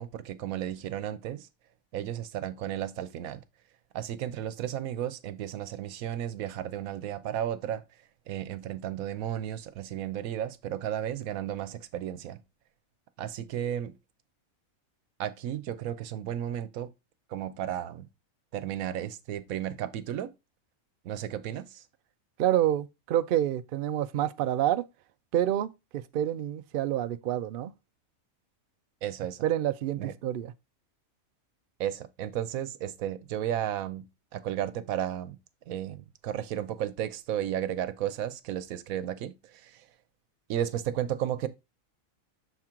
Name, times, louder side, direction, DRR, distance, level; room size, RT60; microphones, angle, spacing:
voice 1, 0.0-1.5 1.9-3.4 3.9-7.8 8.3-12.4 13.2-13.9 15.2-16.9 17.3-18.1 18.5-20.3 21.0-21.9 29.0-29.5 30.0-30.1 31.8-34.0 34.3-35.4 35.7-39.9 40.5-41.5, right 11 dB, 85° right, 1.1 m, -33 dB
voice 2, 22.4-24.8 25.3-25.7 25.9-27.7 29.4-30.5, right 12 dB, 70° right, 0.5 m, -28 dB
6.4 x 4.5 x 3.6 m
omnidirectional pair, 1.4 m